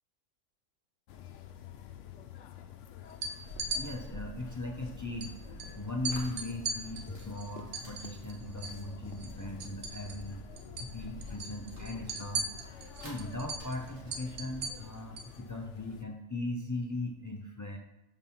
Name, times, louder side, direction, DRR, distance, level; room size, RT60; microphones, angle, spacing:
sound 1, 1.1-16.0, left 10 dB, 75° left, 0.9 m, -50 dB
sound 2, 3.1-3.8 5.2-5.3 5.6-5.7 6.1-8.8 9.1-10.3 10.6-10.9 11.2-15.3, right 3 dB, 80° right, 1.2 m, -38 dB
sound 3, 3.4-14.8, equal, 65° right, 1.9 m, -49 dB
voice 1, 3.7-10.5 10.8-17.8, left 2 dB, 30° left, 1 dB, 0.3 m, -39 dB
5.4 x 4.0 x 5.8 m, 0.96 s
omnidirectional pair, 1.3 m